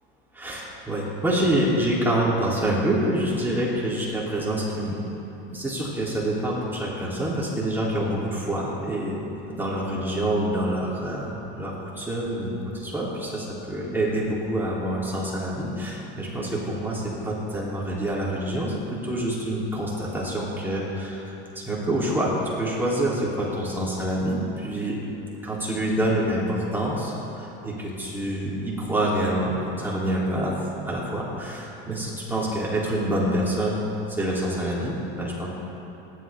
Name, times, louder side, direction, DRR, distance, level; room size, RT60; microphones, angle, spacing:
voice 1, 0.3-5.0 5.5-9.2 9.5-21.2 21.5-25.0 25.4-30.5 30.8-35.5, right 1 dB, 5° right, -6 dB, 3.5 m, -26 dB
27.0 x 12.0 x 3.7 m, 3.0 s
supercardioid pair, 120°, 30 cm